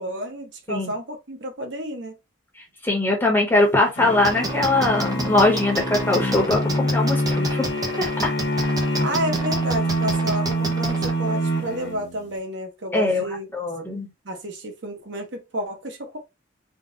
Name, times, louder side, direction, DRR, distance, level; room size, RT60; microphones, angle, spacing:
voice 1, 0.0-2.1 9.0-13.5 14.2-16.2, equal, 70° right, 1.0 m, -30 dB
voice 2, 2.8-8.3 12.9-13.2 13.5-14.1, left 2 dB, 10° left, 1.3 m, -21 dB
sound 1, 4.0-12.3, equal, 70° left, 1.2 m, -25 dB
sound 2, 4.2-11.1, right 2 dB, 20° right, 0.7 m, -29 dB
3.8 x 2.5 x 3.8 m
head